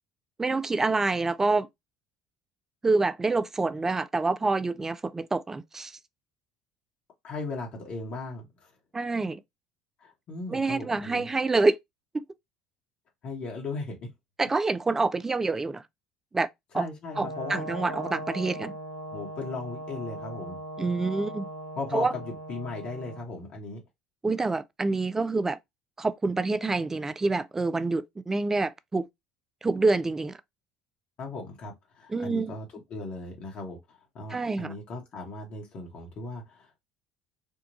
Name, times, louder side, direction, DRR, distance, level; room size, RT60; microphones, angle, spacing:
voice 1, 0.4-1.7 2.8-5.9 8.9-9.4 10.5-11.8 12.1-12.2 14.4-15.8 16.3-16.5 16.7-16.8 17.2-18.7 20.8-21.5 21.9-22.1 24.2-25.6 26.0-29.1 29.6-30.4 32.1-32.6 34.3-34.7, right 3 dB, 20° right, 0.4 m, -27 dB
voice 2, 7.2-8.5 10.0-11.3 13.2-14.1 16.7-17.6 19.1-20.6 21.8-23.8 31.2-36.8, left 3 dB, 50° left, 1.2 m, -37 dB
Brass instrument, 17.1-23.2, right 1 dB, 90° right, 0.7 m, -39 dB
3.6 x 2.3 x 2.7 m
hypercardioid pair, 65°, 2 cm